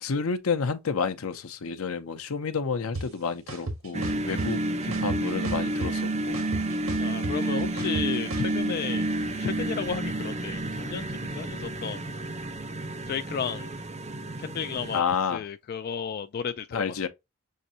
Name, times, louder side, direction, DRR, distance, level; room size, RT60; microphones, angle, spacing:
voice 1, 0.0-6.5 14.9-15.5 16.7-17.1, left 5 dB, 85° left, 0.7 m, -30 dB
sound 1, 2.9-3.0 3.5-4.5 4.9-6.0 6.3-8.5, right 2 dB, 75° right, 1.7 m, -34 dB
sound 2, 3.9-15.0, right 2 dB, 30° right, 0.6 m, -30 dB
voice 2, 7.0-9.1 9.4-12.0 13.1-13.7 14.4-15.0 15.3-17.1, left 7 dB, 45° left, 0.3 m, -33 dB
6.4 x 2.6 x 2.7 m
head